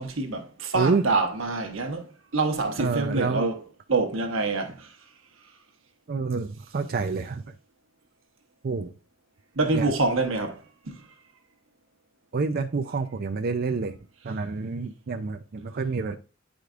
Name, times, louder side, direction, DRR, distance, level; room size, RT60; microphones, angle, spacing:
voice 1, 0.0-3.6 3.9-4.9 9.5-11.0, right 3 dB, 85° right, 1.2 m, -26 dB
voice 2, 2.8-3.5 6.1-7.4 8.6-8.9 9.7-9.9 12.3-14.0 14.2-16.2, right 4 dB, 50° right, 0.5 m, -28 dB
9.1 x 5.0 x 2.5 m
head